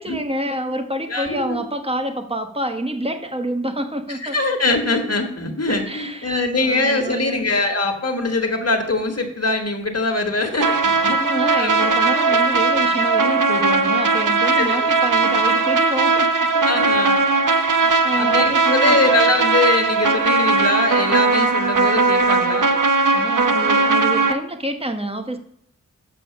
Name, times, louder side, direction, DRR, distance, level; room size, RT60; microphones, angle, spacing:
voice 1, 0.0-4.4 5.9-7.4 11.0-16.7 17.8-19.0 23.1-25.4, right 1 dB, 20° right, 6 dB, 1.1 m, -27 dB
voice 2, 1.1-1.6 4.1-11.9 12.3-12.4 14.6-15.0 16.6-17.3 18.2-22.7, left 2 dB, 50° left, 4 dB, 1.6 m, -23 dB
sound 1, 10.6-24.3, right 3 dB, 75° right, 0.8 m, -18 dB
7.1 x 6.7 x 6.4 m, 0.73 s
wide cardioid pair, 55°, 32 cm